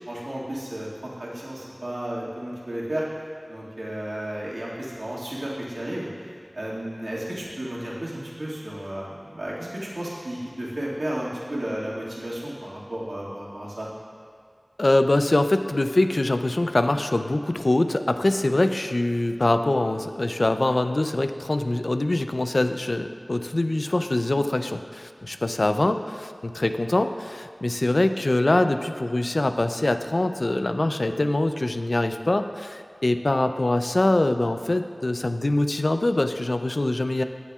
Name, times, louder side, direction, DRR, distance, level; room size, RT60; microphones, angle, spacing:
voice 1, 0.1-3.0 3.5-6.1 6.5-13.9, right 1 dB, 80° right, -7 dB, 2.0 m, -33 dB
voice 2, 14.8-37.2, left 2 dB, 70° left, 8 dB, 0.4 m, -23 dB
21.5 x 7.2 x 2.4 m, 2.1 s
wide cardioid pair, 40°, 0 cm